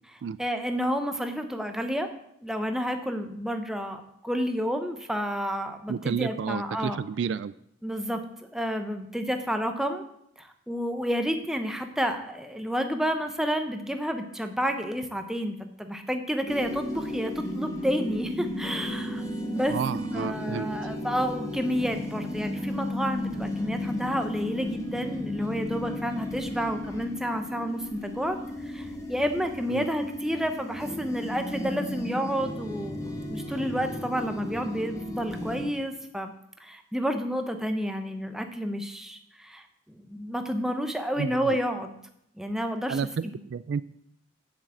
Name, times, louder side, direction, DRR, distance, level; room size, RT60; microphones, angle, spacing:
voice 1, 0.4-2.1 2.4-7.0 7.8-8.2 8.5-10.0 10.4-19.2 19.5-19.8 20.1-28.4 28.6-36.3 36.6-42.0 42.4-43.3, equal, 5° right, 6 dB, 0.9 m, -30 dB
voice 2, 5.9-7.5 19.7-20.7 29.7-29.9 41.2-41.6 42.9-43.8, right 6 dB, 65° right, 17 dB, 0.3 m, -31 dB
sound 1, 16.5-35.7, left 1 dB, 15° left, 1.4 m, -34 dB
7.4 x 7.3 x 8.2 m, 0.75 s
head